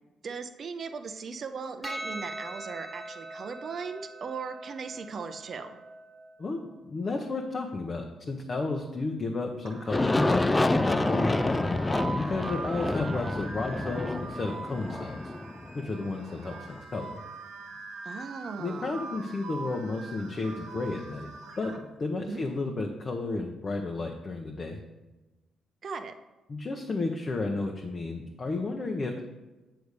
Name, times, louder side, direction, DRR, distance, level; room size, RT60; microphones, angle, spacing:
voice 1, 0.2-5.8 18.0-19.1 22.3-22.4 25.8-26.2, right 5 dB, 50° right, 8 dB, 0.6 m, -38 dB
Percussion, 1.8-6.5, right 1 dB, 5° right, 1.6 m, -42 dB
voice 2, 6.4-15.3 15.7-17.2 18.6-21.3 21.6-24.8 26.5-29.2, left 3 dB, 35° left, 1 dB, 0.7 m, -33 dB
sound 1, 9.7-21.8, right 3 dB, 80° right, 1.3 m, -42 dB
Aircraft, 9.9-16.6, left 2 dB, 15° left, 0.3 m, -28 dB
8.1 x 3.4 x 6.5 m, 1.1 s
cardioid pair, 90°, 0 cm